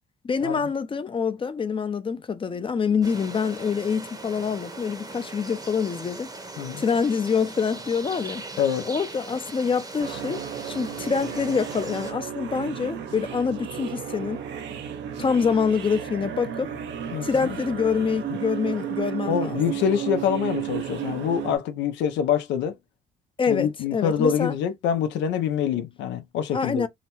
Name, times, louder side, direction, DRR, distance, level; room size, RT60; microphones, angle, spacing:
voice 1, 0.2-6.3 6.8-8.4 8.8-10.4 10.7-14.4 15.2-16.7 17.2-19.6 23.4-24.5 26.5-26.9, left 6 dB, 30° left, 0.5 m, -26 dB
sound 1, 3.0-12.1, right 3 dB, 20° right, 0.7 m, -40 dB
sound 2, 10.0-21.6, right 9 dB, 80° right, 0.6 m, -33 dB
voice 2, 17.1-17.6 19.3-22.7 23.5-26.9, left 8 dB, 85° left, 0.5 m, -25 dB
2.8 x 2.1 x 2.8 m
cardioid pair, 80°, 18 cm